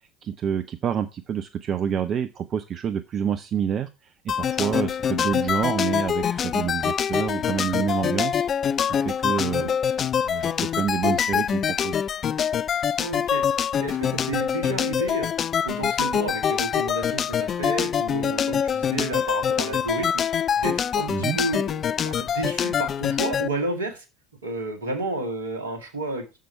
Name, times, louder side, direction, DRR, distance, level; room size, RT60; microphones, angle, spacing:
voice 1, 0.2-8.4 8.9-9.7 10.2-12.0 21.1-21.4, right 8 dB, 40° right, 10 dB, 0.7 m, -28 dB
sound 1, 4.3-23.5, left 8 dB, 35° left, 0.5 m, -25 dB
voice 2, 13.0-15.3 15.6-20.1 20.6-24.0 24.4-26.4, right 2 dB, 75° right, 5 dB, 2.1 m, -31 dB
7.4 x 6.9 x 5.6 m, 0.28 s
figure-of-eight pair, 65°, 0 cm